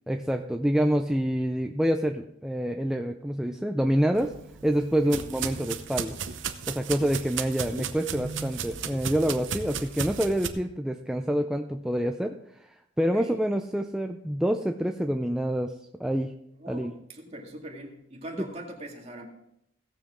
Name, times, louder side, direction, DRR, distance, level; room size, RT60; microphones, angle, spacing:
voice 1, 0.1-4.3 4.6-6.2 6.7-15.7 16.0-16.3 16.7-16.9, equal, 5° right, 4 dB, 0.4 m, -27 dB
sound 1, 4.1-10.5, right 7 dB, 75° right, 0.8 m, -35 dB
voice 2, 13.0-13.4 16.6-19.3, right 1 dB, 35° right, 0 dB, 2.1 m, -41 dB
17.0 x 7.4 x 3.7 m, 0.77 s
head